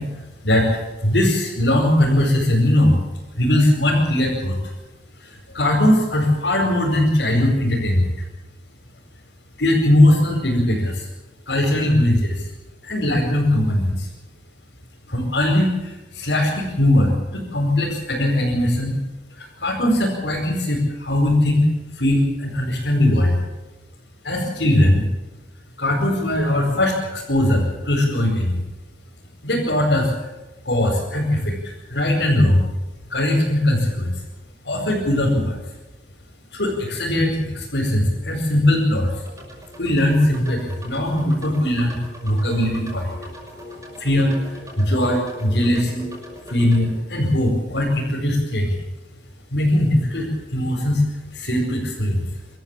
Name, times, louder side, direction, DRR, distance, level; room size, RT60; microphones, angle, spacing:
voice 1, 0.0-3.0 3.3-4.5 5.2-8.2 9.6-11.1 11.5-12.5 12.8-14.1 15.1-19.0 19.3-21.7 21.9-23.4 24.2-25.0 25.8-28.6 29.4-30.3 30.6-32.7 33.1-34.2 34.6-35.5 36.5-39.1 39.8-43.1 44.0-46.0 46.5-48.7 49.5-51.0 51.3-52.2, left 1 dB, 85° left, -5 dB, 5.0 m, -20 dB
sound 1, 39.1-46.8, left 1 dB, 20° right, 5.8 m, -39 dB
25.0 x 13.5 x 8.5 m, 1.1 s
head